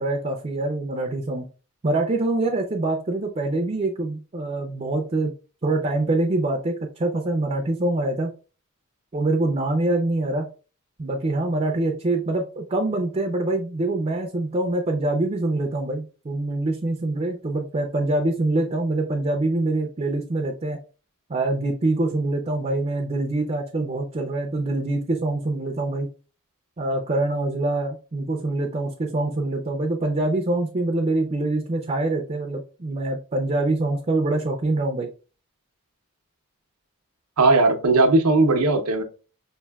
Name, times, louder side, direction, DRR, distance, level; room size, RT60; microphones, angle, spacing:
voice 1, 0.0-1.5 1.8-5.3 5.6-8.3 9.1-10.5 11.0-20.8 21.3-26.1 26.8-35.1, right 2 dB, 30° right, 0.5 m, -25 dB
voice 2, 37.4-39.0, right 2 dB, 85° right, 0.7 m, -18 dB
5.5 x 2.6 x 2.2 m
head